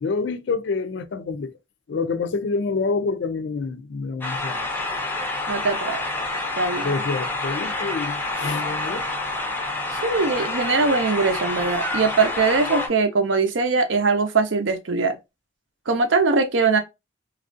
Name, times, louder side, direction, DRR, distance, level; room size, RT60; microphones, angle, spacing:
voice 1, 0.0-1.6 1.9-4.7 6.8-9.1 9.6-9.7, left 4 dB, 65° left, 0.4 m, -27 dB
sound 1, 4.2-12.9, left 2 dB, 10° left, 0.5 m, -28 dB
voice 2, 5.5-6.0 6.6-6.9 9.9-15.2 15.9-16.8, right 4 dB, 80° right, 0.7 m, -21 dB
3.2 x 2.4 x 2.5 m
head